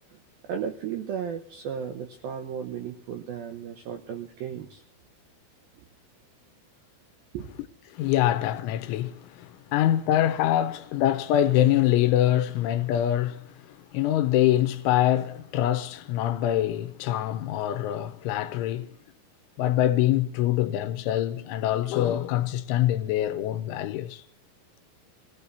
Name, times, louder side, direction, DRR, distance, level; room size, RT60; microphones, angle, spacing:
voice 1, 0.5-4.8 7.3-7.5, right 8 dB, 85° right, 2.1 m, -34 dB
voice 2, 7.9-18.9 19.6-24.2, left 12 dB, 80° left, 3.1 m, -24 dB
28.5 x 18.5 x 2.7 m
omnidirectional pair, 5.7 m